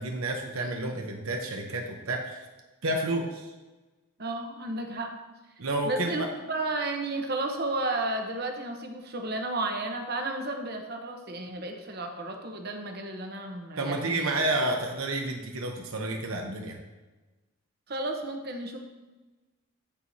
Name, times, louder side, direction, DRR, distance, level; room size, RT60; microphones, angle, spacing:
voice 1, 0.0-2.4 2.8-3.5 5.6-6.3 13.8-16.8, right 2 dB, 80° right, 2 dB, 0.9 m, -30 dB
voice 2, 4.2-5.1 5.8-14.4 17.9-18.8, right 2 dB, 45° right, 3 dB, 1.0 m, -33 dB
14.0 x 4.8 x 2.8 m, 1.2 s
head